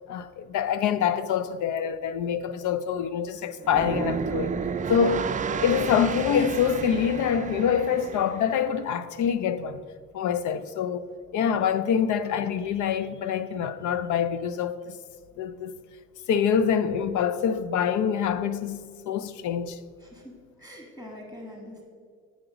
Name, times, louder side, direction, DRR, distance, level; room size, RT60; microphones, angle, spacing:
voice 1, 0.1-4.5 4.9-5.3 5.6-9.8 10.1-15.0 15.4-15.8 16.3-18.8 19.1-19.8, left 7 dB, 75° left, 0.5 m, -25 dB
sound 1, 3.6-8.7, right 6 dB, 25° right, 0.4 m, -31 dB
voice 2, 20.0-21.8, left 1 dB, 10° left, 1.7 m, -44 dB
8.7 x 5.2 x 4.9 m
cardioid pair, 90°, 30 cm